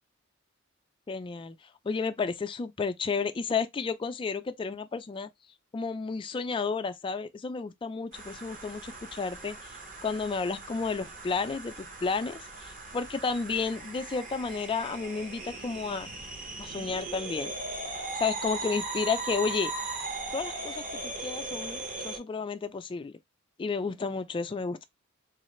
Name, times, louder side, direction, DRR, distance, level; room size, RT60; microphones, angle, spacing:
voice 1, 1.1-1.6 1.8-5.3 5.7-9.7 10.0-16.1 16.6-17.5 18.2-19.7 20.3-23.1 23.6-24.8, left 5 dB, 25° left, 0.3 m, -32 dB
sound 1, 8.1-22.2, right 2 dB, 40° right, 0.8 m, -38 dB
3.1 x 2.4 x 3.0 m
head